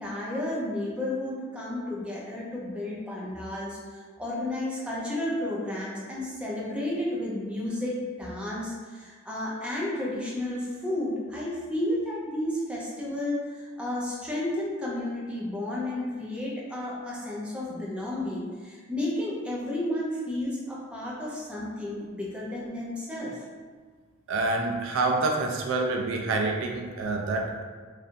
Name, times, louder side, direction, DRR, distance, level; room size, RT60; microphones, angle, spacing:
voice 1, 0.0-23.4, left 1 dB, 5° right, -6 dB, 0.6 m, -32 dB
voice 2, 24.3-27.6, right 3 dB, 70° right, 2 dB, 0.3 m, -27 dB
3.2 x 2.4 x 2.6 m, 1.5 s
head